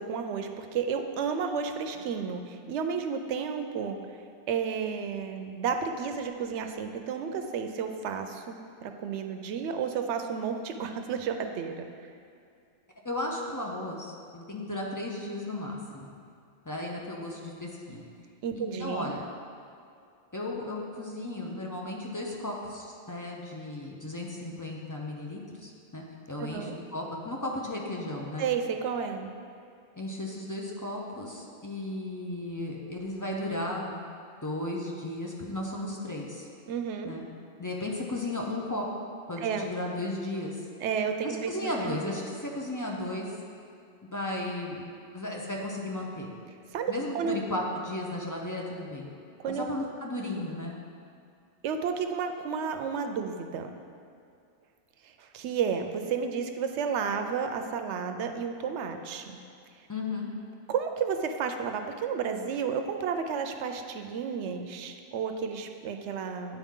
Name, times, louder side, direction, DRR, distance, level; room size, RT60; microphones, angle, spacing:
voice 1, 0.0-4.0 4.5-11.9 18.4-19.1 26.4-26.8 28.4-29.3 36.7-37.1 39.4-39.6 40.8-41.9 46.7-47.4 49.4-49.7 51.6-53.7 55.0-59.4 60.7-66.6, right 6 dB, 75° right, 6 dB, 0.8 m, -32 dB
voice 2, 13.0-16.1 16.7-18.0 18.5-19.2 20.3-28.5 29.9-34.1 34.4-36.5 37.0-37.2 37.6-38.9 39.3-40.6 41.2-43.3 44.1-44.8 45.1-46.3 46.9-49.1 49.5-50.8 59.9-60.3, left 1 dB, 25° left, -2 dB, 0.4 m, -35 dB
9.0 x 4.3 x 3.6 m, 2.4 s
omnidirectional pair, 1.2 m